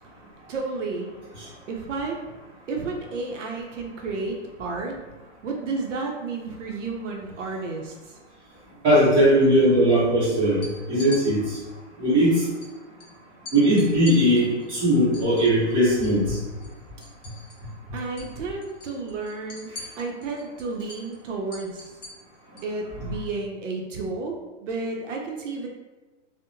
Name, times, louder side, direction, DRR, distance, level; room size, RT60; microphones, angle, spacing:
voice 1, 0.5-1.2 1.7-2.2 2.7-4.9 5.4-8.2 17.9-21.9 22.6-25.7, right 3 dB, 75° right, 1 dB, 0.6 m, -32 dB
voice 2, 8.8-11.6 12.0-12.4 13.5-16.4, equal, 15° right, -10 dB, 0.8 m, -19 dB
sound 1, 10.5-11.2 12.6-12.7 13.0-13.1 13.5-16.2 16.5-17.7 18.0-18.3 18.6-22.7, left 2 dB, 35° left, 0.5 m, -43 dB
2.7 x 2.1 x 2.5 m, 1.2 s
hypercardioid pair, 155°, 37 cm